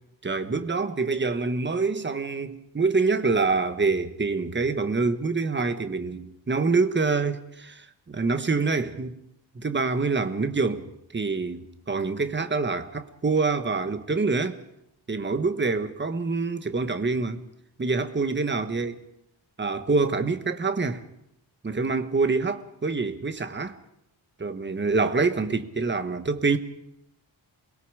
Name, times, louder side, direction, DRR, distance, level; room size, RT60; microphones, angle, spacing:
voice 1, 0.2-9.2 9.5-14.6 15.1-17.5 17.8-19.0 19.6-21.0 21.6-23.8 24.4-26.6, right 4 dB, 25° right, 1.3 m, -26 dB
28.0 x 21.0 x 4.9 m
wide cardioid pair, 150°, 46 cm